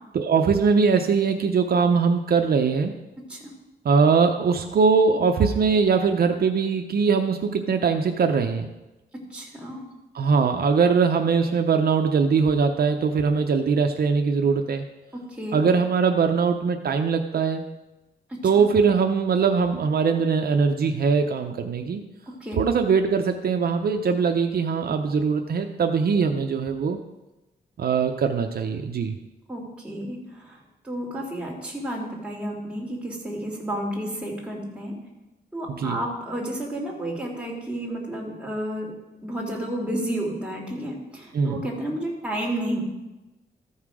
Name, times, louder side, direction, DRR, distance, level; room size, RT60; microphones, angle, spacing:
voice 1, 0.1-2.9 3.8-8.7 10.1-14.8 15.5-17.6 18.4-22.1 22.6-27.0 27.8-29.2 35.7-36.0 41.3-41.7, right 5 dB, 65° right, 5 dB, 0.6 m, -21 dB
voice 2, 9.3-9.8 15.1-15.6 18.3-18.7 22.4-22.6 29.5-30.6 30.8-34.9 35.5-38.9 39.2-42.8, right 1 dB, 5° right, -3 dB, 2.1 m, -31 dB
13.5 x 5.6 x 4.8 m, 1.0 s
wide cardioid pair, 165°, 17 cm